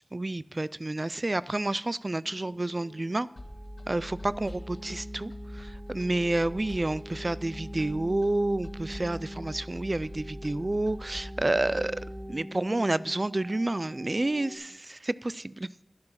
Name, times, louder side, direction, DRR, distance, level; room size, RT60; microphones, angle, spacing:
voice 1, 0.1-3.3 3.9-12.0 12.3-15.8, right 2 dB, 50° right, 18 dB, 0.3 m, -29 dB
sound 1, 2.2-14.6, equal, 30° right, 2.8 m, -45 dB
sound 2, 3.4-12.2, equal, 70° left, 1.6 m, -43 dB
11.0 x 7.6 x 5.8 m, 0.78 s
wide cardioid pair, 50°, 0 cm